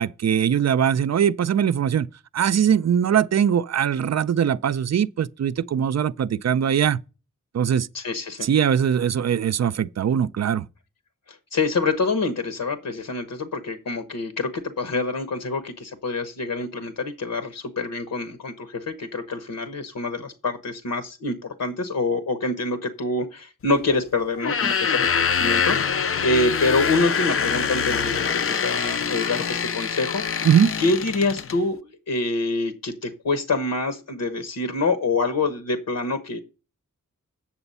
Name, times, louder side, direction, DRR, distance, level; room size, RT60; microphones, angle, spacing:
voice 1, 0.0-7.0 7.5-7.9 8.4-10.7 30.4-30.7, right 8 dB, 55° right, 0.5 m, -21 dB
voice 2, 7.9-8.5 11.3-30.5 30.8-36.4, left 3 dB, 75° left, 1.1 m, -26 dB
sound 1, 24.3-31.6, left 6 dB, 45° left, 0.5 m, -24 dB
8.9 x 7.0 x 5.5 m
wide cardioid pair, 135°, 32 cm